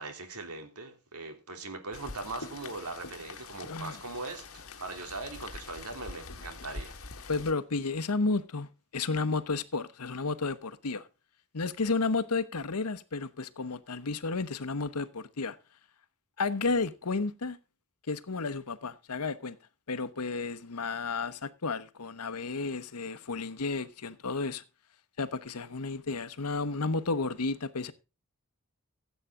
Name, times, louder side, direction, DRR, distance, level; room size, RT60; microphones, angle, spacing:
voice 1, 0.0-6.9, right 3 dB, 80° right, 3.2 m, -40 dB
Rain, 1.9-7.5, left 3 dB, 65° left, 1.7 m, -45 dB
voice 2, 7.3-8.7 8.9-11.0 11.5-15.6 16.4-17.6 18.1-19.5 19.9-24.6 25.2-27.9, left 3 dB, 85° left, 1.0 m, -32 dB
15.5 x 8.3 x 3.7 m
head